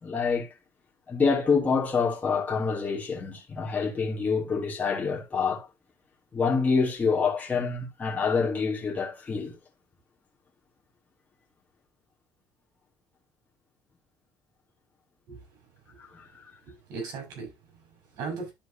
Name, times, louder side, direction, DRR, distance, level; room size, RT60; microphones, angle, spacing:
voice 1, 0.0-0.5 1.1-5.7 6.3-9.6 16.0-16.3, left 5 dB, 25° left, 2.7 m, -26 dB
voice 2, 16.6-18.5, right 4 dB, 65° right, 5.9 m, -38 dB
12.5 x 4.6 x 2.8 m
cardioid pair, 105°, 7 cm